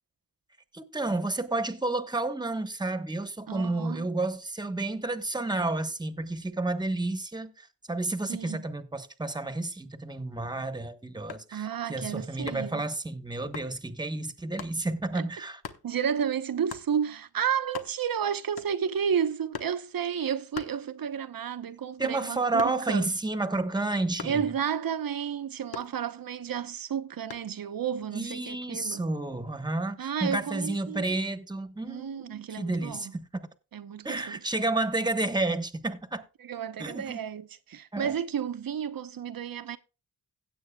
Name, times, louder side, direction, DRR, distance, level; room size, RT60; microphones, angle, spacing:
voice 1, 0.7-15.6 22.0-24.4 28.1-33.2 34.0-36.2 36.8-37.2 37.9-38.1, right 2 dB, 10° right, 1.1 m, -31 dB
voice 2, 3.5-4.1 8.3-8.7 11.5-12.8 15.1-15.2 15.8-23.1 24.2-29.0 30.0-31.1 31.8-33.1 33.7-34.4 36.4-39.8, right 8 dB, 65° right, 0.9 m, -32 dB
sound 1, 11.3-11.6 12.5-12.8 13.5-13.8 14.6-14.8 15.6-15.9 16.7-16.9 17.4-17.5 17.6-18.2 18.6-19.0 19.5-19.8 20.5-21.3 21.7-23.1 24.2-24.5 25.7-26.4 27.3-27.6, left 7 dB, 85° left, 1.2 m, -41 dB
17.0 x 8.0 x 2.3 m
cardioid pair, 75°, 37 cm